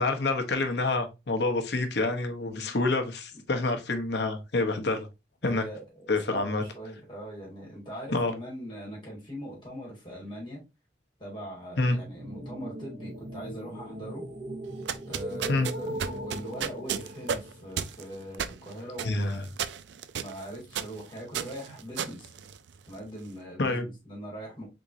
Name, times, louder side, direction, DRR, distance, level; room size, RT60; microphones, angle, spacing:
voice 1, 0.0-5.1 5.4-5.6 6.1-6.6 8.1-8.3 11.8-12.0 15.5-15.7 19.0-19.4 23.6-23.9, left 2 dB, 70° left, 0.8 m, -27 dB
voice 2, 2.4-2.8 5.4-10.6 11.2-14.2 15.1-19.5 20.2-22.3 22.9-24.7, right 1 dB, 25° left, 2.2 m, -41 dB
sound 1, 11.9-17.9, equal, 40° right, 0.7 m, -39 dB
sound 2, 14.7-23.1, right 7 dB, 75° right, 0.4 m, -35 dB
4.0 x 3.6 x 2.6 m
head